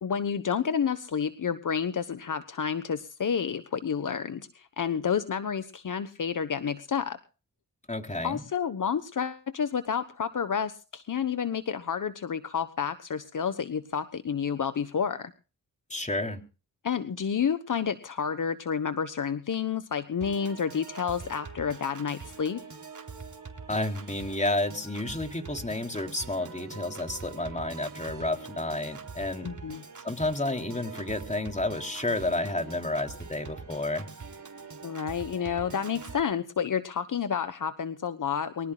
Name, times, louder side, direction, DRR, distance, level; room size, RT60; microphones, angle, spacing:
voice 1, 0.0-7.2 8.2-15.3 16.8-22.6 29.4-29.8 34.8-38.7, left 7 dB, 55° left, 11 dB, 1.2 m, -30 dB
voice 2, 7.9-8.4 15.9-16.4 23.7-29.5 30.0-34.1, left 2 dB, 20° left, 5 dB, 3.6 m, -31 dB
Piano / Organ, 20.2-36.2, right 5 dB, 55° right, 3.7 m, -44 dB
24.5 x 17.5 x 2.4 m, 0.35 s
cardioid pair, 55°, 36 cm